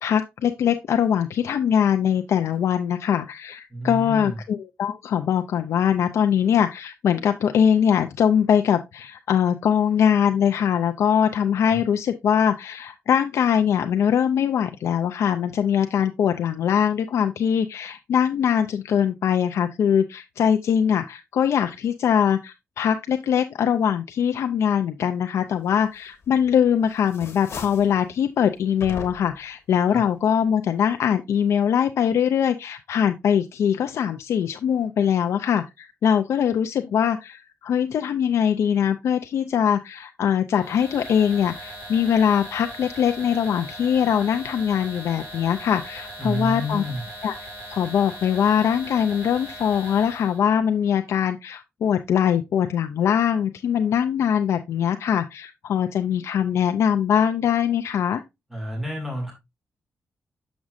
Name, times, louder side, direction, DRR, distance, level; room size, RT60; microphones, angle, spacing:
voice 1, 0.0-46.8 47.2-47.3 47.7-58.2, left 8 dB, 85° left, 0.4 m, -22 dB
voice 2, 3.7-4.4 11.7-11.8 29.9-30.0 46.2-47.0 58.5-59.3, equal, 5° right, 2.1 m, -30 dB
sound 1, 26.2-26.7 27.0-28.0 28.8-29.5, left 5 dB, 70° left, 1.2 m, -38 dB
sound 2, 40.5-50.4, equal, 25° right, 3.5 m, -39 dB
7.2 x 6.1 x 2.5 m
wide cardioid pair, 140°, 5 cm